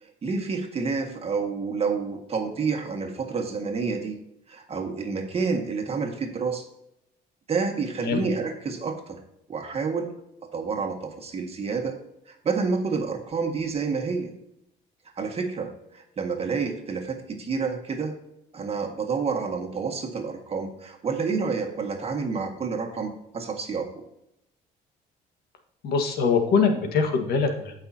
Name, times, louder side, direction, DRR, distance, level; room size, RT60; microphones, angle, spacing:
voice 1, 0.0-4.2 4.5-6.6 7.5-9.2 9.5-10.1 10.4-12.0 12.3-14.3 15.2-18.1 18.5-24.0, right 5 dB, 35° right, 4 dB, 1.8 m, -29 dB
voice 2, 25.8-27.7, left 5 dB, 70° left, 5 dB, 1.6 m, -23 dB
14.5 x 5.7 x 2.8 m, 0.80 s
cardioid pair, 110°, 17 cm